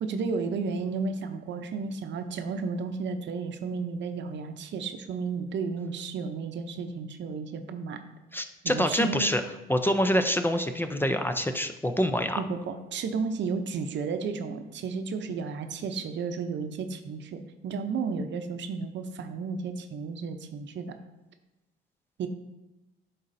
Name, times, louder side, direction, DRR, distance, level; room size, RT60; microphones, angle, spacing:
voice 1, 0.0-8.0 8.6-9.3 12.4-21.0 22.2-22.3, right 5 dB, 65° right, 7 dB, 0.7 m, -33 dB
voice 2, 8.3-9.4 9.7-12.4, equal, 10° left, 7 dB, 0.4 m, -26 dB
10.5 x 4.1 x 2.6 m, 1.0 s
cardioid pair, 90°, 20 cm